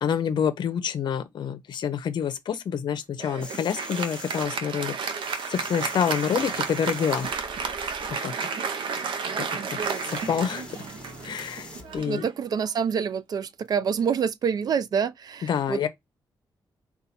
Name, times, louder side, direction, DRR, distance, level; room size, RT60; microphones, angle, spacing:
voice 1, 0.0-4.9 5.5-7.3 8.2-8.3 9.4-9.5 10.1-10.7 11.2-11.7 11.9-12.2 15.4-15.9, left 8 dB, 70° left, 0.6 m, -27 dB
Applause, 3.2-13.0, right 5 dB, 90° right, 0.6 m, -32 dB
sound 1, 3.4-4.5 5.2-8.1 9.2-9.3 9.8-12.0 13.7-13.8, left 2 dB, 10° left, 1.1 m, -44 dB
voice 2, 12.1-15.9, right 7 dB, 55° right, 0.3 m, -27 dB
4.0 x 2.3 x 4.2 m
wide cardioid pair, 140°, 8 cm